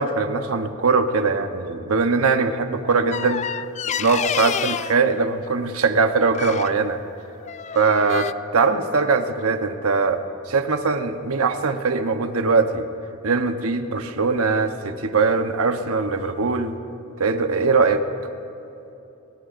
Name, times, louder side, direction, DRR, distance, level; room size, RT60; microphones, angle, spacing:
voice 1, 0.0-3.6 4.0-7.0 7.7-10.2 10.5-12.9 13.2-16.7 17.2-18.0, right 4 dB, 85° right, 7 dB, 1.0 m, -21 dB
sound 1, 3.1-5.0 6.3-6.8 7.4-8.3, left 8 dB, 35° left, 0.3 m, -28 dB
29.0 x 18.5 x 2.6 m, 2.9 s
head